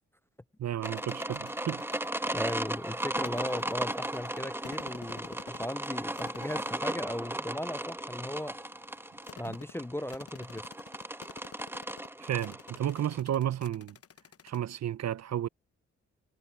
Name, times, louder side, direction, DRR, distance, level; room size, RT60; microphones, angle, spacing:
voice 1, 0.6-1.8 9.5-9.6 12.2-14.0 14.4-15.5, right 11 dB, 60° right, 0.8 m, -32 dB
sound 1, 0.8-2.6 3.3-5.9 6.1-7.2 7.8-14.6, left 8 dB, 50° left, 0.9 m, -51 dB
sound 2, 0.8-13.2, right 1 dB, 10° right, 1.1 m, -36 dB
voice 2, 2.3-8.6 9.4-10.7, left 1 dB, 10° left, 0.4 m, -37 dB
supercardioid pair, 45°, 30 cm